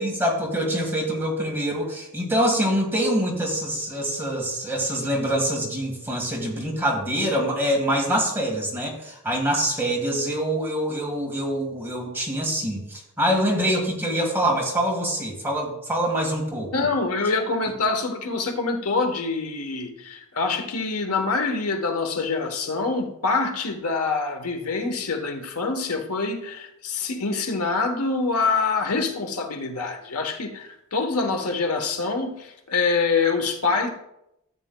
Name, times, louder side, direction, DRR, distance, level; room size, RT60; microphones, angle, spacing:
voice 1, 0.0-16.7, equal, 10° right, 0 dB, 1.7 m, -25 dB
voice 2, 16.7-33.9, left 4 dB, 75° left, 4 dB, 1.1 m, -25 dB
13.0 x 8.4 x 2.2 m, 0.83 s
head